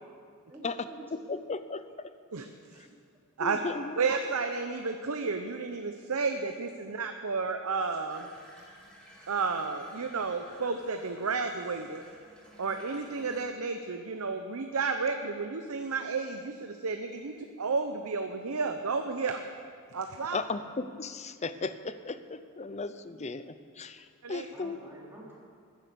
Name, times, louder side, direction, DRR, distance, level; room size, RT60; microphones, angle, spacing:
voice 1, 0.5-1.1 2.8-2.9 3.9-4.1 24.4-25.3, right 1 dB, 10° right, -6 dB, 3.6 m, -48 dB
voice 2, 1.3-2.1 3.4-4.0 20.3-24.8, left 3 dB, 30° left, 12 dB, 0.6 m, -36 dB
voice 3, 4.0-8.3 9.3-12.0 12.6-19.4 19.9-20.4 24.2-24.5, right 4 dB, 80° right, 6 dB, 0.7 m, -32 dB
Water tap faucet / Bathtub (filling or washing), 8.1-13.4, equal, 5° left, 3.0 m, -55 dB
14.5 x 10.5 x 6.9 m, 2.2 s
head